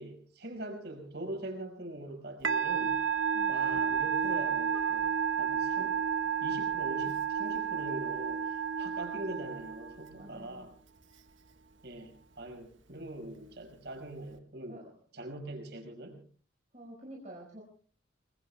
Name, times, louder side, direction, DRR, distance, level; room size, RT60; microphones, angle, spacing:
voice 1, 0.0-3.0 3.5-6.0 6.4-10.7 11.8-14.8 15.1-16.2, right 1 dB, 55° right, 4 dB, 5.4 m, -42 dB
Musical instrument, 2.4-10.1, right 7 dB, 75° right, 1.5 m, -31 dB
voice 2, 10.1-10.7 14.7-14.8 16.7-17.6, right 1 dB, 40° right, -2 dB, 4.7 m, -48 dB
29.5 x 21.5 x 2.3 m, 0.43 s
head